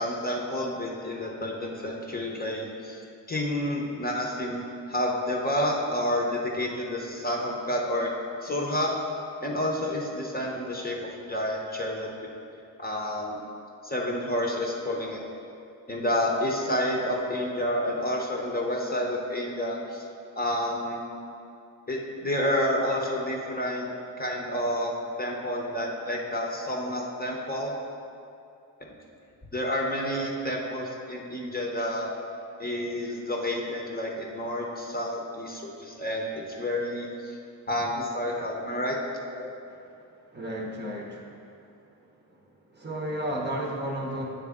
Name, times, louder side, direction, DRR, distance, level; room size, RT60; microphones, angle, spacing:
voice 1, 0.0-3.0 3.3-4.6 4.9-8.1 8.4-9.0 9.4-12.3 12.8-13.4 13.8-15.2 15.9-20.1 20.4-21.0 21.9-24.9 25.2-27.7 28.8-28.9 29.5-32.1 32.6-36.3 36.6-37.4 37.7-39.0, left 1 dB, 20° left, -1 dB, 0.9 m, -29 dB
voice 2, 39.3-40.0 40.3-41.5 42.7-44.2, right 1 dB, 25° right, -1 dB, 0.8 m, -33 dB
8.5 x 3.3 x 3.6 m, 2.6 s
supercardioid pair, 65°, 41 cm